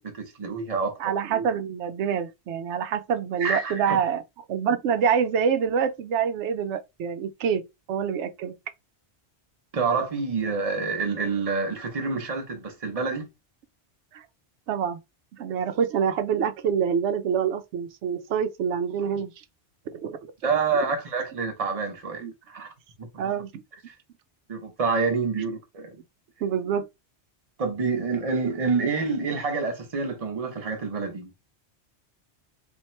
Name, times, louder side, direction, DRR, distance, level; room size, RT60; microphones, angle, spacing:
voice 1, 0.0-1.0 3.4-4.0 9.7-13.3 20.4-22.7 23.0-23.3 23.9-24.0 24.5-25.9 27.6-31.4, right 4 dB, 35° right, 0.8 m, -27 dB
voice 2, 1.0-4.2 4.5-7.6 7.9-8.5 14.1-14.3 14.7-15.0 15.3-19.3 19.9-20.2 22.2-22.3 23.2-23.6 26.4-26.9, right 7 dB, 85° right, 0.9 m, -26 dB
3.0 x 2.6 x 4.3 m
omnidirectional pair, 1.1 m